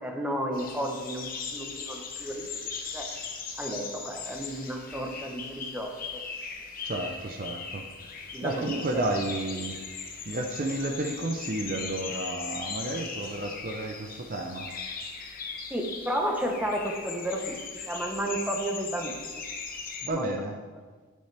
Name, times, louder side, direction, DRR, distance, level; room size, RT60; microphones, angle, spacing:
voice 1, 0.0-2.5 2.9-3.1 3.6-6.2 8.3-9.1 15.7-17.6 17.9-19.4 20.1-20.3, right 1 dB, 5° right, 1 dB, 0.9 m, -32 dB
sound 1, 0.5-20.1, left 5 dB, 40° left, 1.0 m, -39 dB
voice 2, 6.8-14.7 20.0-20.6, right 2 dB, 40° right, 3 dB, 0.6 m, -32 dB
9.7 x 8.4 x 3.4 m, 1.4 s
head